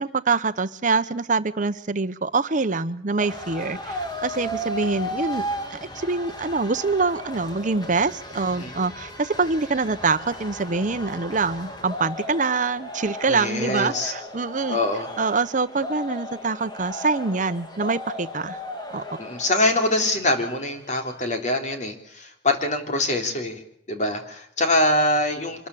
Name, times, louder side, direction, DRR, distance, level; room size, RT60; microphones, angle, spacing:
voice 1, 0.0-5.5 5.7-14.8 15.2-18.6 18.9-19.0, right 4 dB, 45° right, 12 dB, 0.9 m, -25 dB
sound 1, 3.2-20.9, left 1 dB, 25° left, 2.7 m, -35 dB
voice 2, 13.3-14.1 14.7-15.1 19.2-23.6 23.9-25.7, left 1 dB, 45° left, 4 dB, 3.4 m, -24 dB
25.0 x 13.5 x 8.4 m, 0.76 s
head